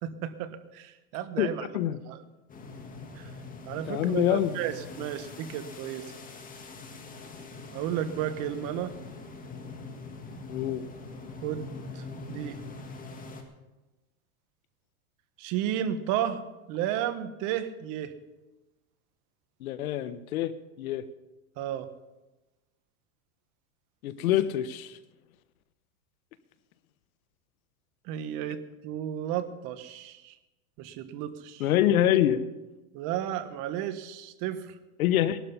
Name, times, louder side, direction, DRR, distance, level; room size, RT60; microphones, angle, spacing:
voice 1, 0.0-1.7 2.1-2.2 3.2-3.3 3.6-6.1 7.7-8.9 11.4-12.0 12.3-12.6 15.4-16.4 16.7-18.1 21.6-21.9 28.1-30.3 30.8-31.7 32.9-34.7, right 10 dB, 45° right, 11 dB, 1.4 m, -33 dB
voice 2, 1.4-2.0 3.9-4.5 10.5-10.8 19.6-20.5 20.8-21.0 24.0-25.0 31.6-32.4 35.0-35.4, left 12 dB, 75° left, 13 dB, 1.2 m, -25 dB
sound 1, 2.5-13.4, left 3 dB, 20° left, 2.0 m, -43 dB
19.0 x 12.0 x 5.5 m, 1.1 s
supercardioid pair, 135°, 43 cm